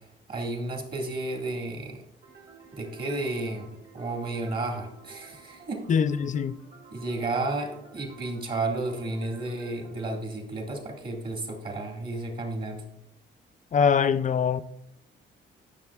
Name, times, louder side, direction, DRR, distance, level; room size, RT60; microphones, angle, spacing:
voice 1, 0.3-2.0 2.7-5.9 6.9-12.8, right 2 dB, 50° right, 1.9 m, -32 dB
sound 1, 2.2-10.2, right 5 dB, 85° right, 3.4 m, -52 dB
voice 2, 5.9-6.6 13.7-14.6, left 6 dB, 40° left, 0.5 m, -23 dB
18.0 x 6.4 x 2.4 m
cardioid pair, 90°, 20 cm